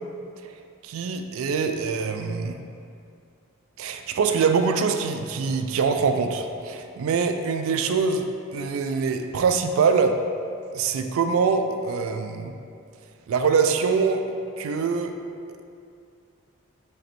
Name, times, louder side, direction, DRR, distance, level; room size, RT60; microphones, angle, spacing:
voice 1, 0.8-2.6 3.8-8.2 8.5-10.2 10.7-12.5 13.3-14.2 14.6-15.1, right 5 dB, 75° right, 7 dB, 0.3 m, -24 dB
4.9 x 3.1 x 3.0 m, 2.5 s
head